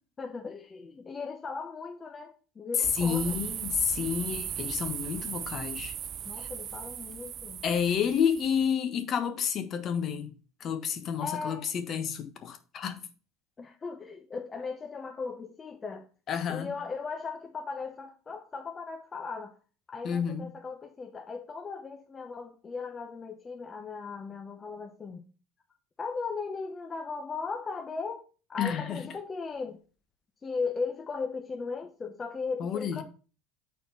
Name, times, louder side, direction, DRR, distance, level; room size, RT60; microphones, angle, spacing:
voice 1, 0.2-3.5 6.2-7.6 11.2-11.7 13.6-16.1 16.5-19.6 19.9-25.2 26.0-28.2 28.5-29.8 30.4-33.0, left 4 dB, 25° left, 0.8 m, -37 dB
sound 1, 2.8-8.7, right 9 dB, 45° right, 0.4 m, -37 dB
voice 2, 3.0-5.9 6.4-6.5 7.6-10.3 10.6-13.0 16.3-16.7 20.0-20.4 28.6-29.0 32.6-33.0, left 7 dB, 45° left, 1.3 m, -30 dB
7.1 x 4.3 x 5.6 m
supercardioid pair, 105°, 0 cm